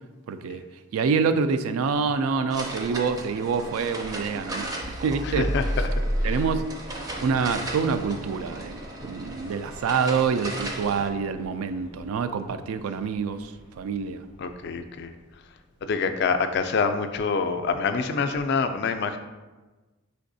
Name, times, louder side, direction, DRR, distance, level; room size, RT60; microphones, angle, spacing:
voice 1, 0.3-0.6 0.9-5.5 6.2-6.6 7.2-13.5 13.8-14.2, right 5 dB, 90° right, 10 dB, 0.3 m, -26 dB
sound 1, 2.5-11.1, right 1 dB, 20° right, 0.4 m, -37 dB
sound 2, 3.8-14.6, equal, 75° right, 0.9 m, -35 dB
voice 2, 5.2-5.9 6.2-6.4 14.4-15.1 15.8-19.2, left 5 dB, 55° left, 8 dB, 0.3 m, -26 dB
5.4 x 3.3 x 2.6 m, 1.2 s
head